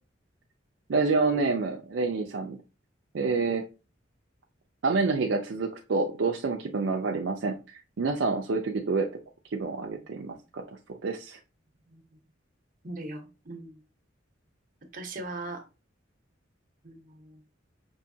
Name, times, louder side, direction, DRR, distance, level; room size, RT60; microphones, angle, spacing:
voice 1, 0.9-2.6 3.1-3.6 4.8-9.1 9.5-10.6 10.9-11.4, right 4 dB, 70° right, 2 dB, 0.5 m, -28 dB
voice 2, 12.8-13.8 14.9-15.6 16.8-17.4, right 2 dB, 45° right, 4 dB, 1.0 m, -39 dB
5.5 x 2.7 x 2.7 m, 0.31 s
head